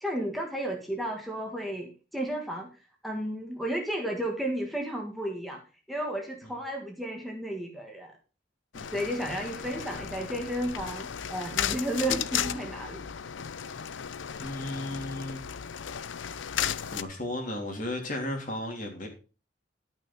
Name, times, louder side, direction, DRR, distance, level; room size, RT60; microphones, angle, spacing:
voice 1, 0.0-2.7 3.0-5.6 5.9-8.1 8.9-13.1, right 1 dB, ahead, 1.6 m, -33 dB
sound 1, 8.7-17.0, left 8 dB, 90° left, 0.6 m, -35 dB
voice 2, 8.7-9.1 14.4-15.6 16.9-19.1, left 1 dB, 45° left, 3.0 m, -35 dB
12.0 x 6.2 x 5.5 m
head